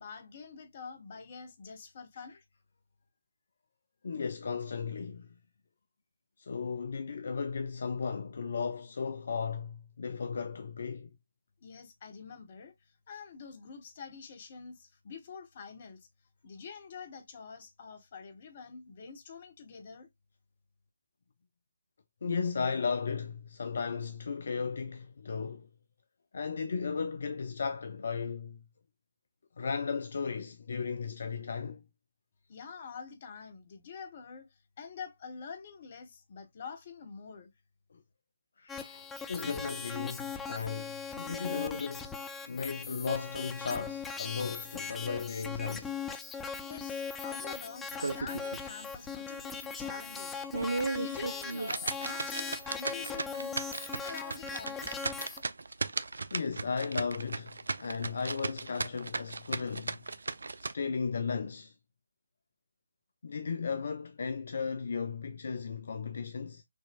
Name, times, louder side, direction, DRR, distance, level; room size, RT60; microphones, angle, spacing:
voice 1, 0.0-2.4 11.6-16.1 16.4-20.1 32.5-37.5 46.6-50.4 50.9-53.6 54.0-55.1, left 5 dB, 35° left, 1.3 m, -46 dB
voice 2, 4.0-5.3 6.4-11.1 22.2-25.7 26.3-28.6 29.6-31.8 37.9-38.0 38.6-42.2 42.5-45.9 56.3-60.0 60.6-61.7 63.2-66.6, left 5 dB, 55° left, 0.5 m, -35 dB
sound 1, 38.7-55.4, left 5 dB, 5° left, 0.6 m, -39 dB
sound 2, 47.9-48.7 49.0-49.1 49.6-49.7 50.3-60.7, right 3 dB, 65° right, 0.5 m, -36 dB
6.3 x 3.0 x 2.4 m
figure-of-eight pair, 145°, 0 cm